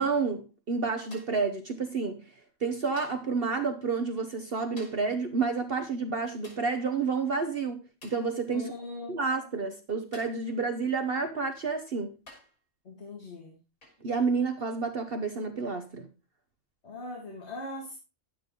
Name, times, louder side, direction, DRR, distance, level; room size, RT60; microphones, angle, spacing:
voice 1, 0.0-2.2 2.6-8.7 9.1-12.1 14.0-16.1, right 4 dB, 50° right, 1.1 m, -30 dB
sound 1, 1.1-1.5 3.0-3.4 4.8-5.2 6.4-6.8 8.0-8.3 10.1-10.5 11.5-11.6 12.3-12.6 13.8-14.1 15.7-15.9, left 1 dB, 85° left, 3.9 m, -52 dB
voice 2, 8.5-9.2 12.8-13.6 16.8-17.9, left 2 dB, 50° left, 2.3 m, -40 dB
11.0 x 8.9 x 3.7 m
omnidirectional pair, 1.4 m